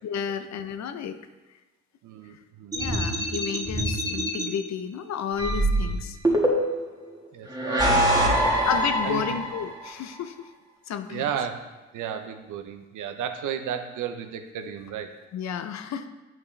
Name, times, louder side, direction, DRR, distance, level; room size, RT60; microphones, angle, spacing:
voice 1, 0.0-1.2 2.7-6.2 8.7-10.4 10.9-11.3 15.3-16.1, left 8 dB, 65° left, 10 dB, 0.7 m, -31 dB
voice 2, 2.0-3.2 7.3-8.4 9.0-9.2 11.1-11.6 11.9-15.2, right 8 dB, 80° right, 7 dB, 0.8 m, -34 dB
sound 1, 2.7-4.5 5.4-6.9 7.5-9.7, right 1 dB, 15° right, 1.6 m, -24 dB
8.9 x 5.9 x 3.2 m, 1.2 s
cardioid pair, 90°, 30 cm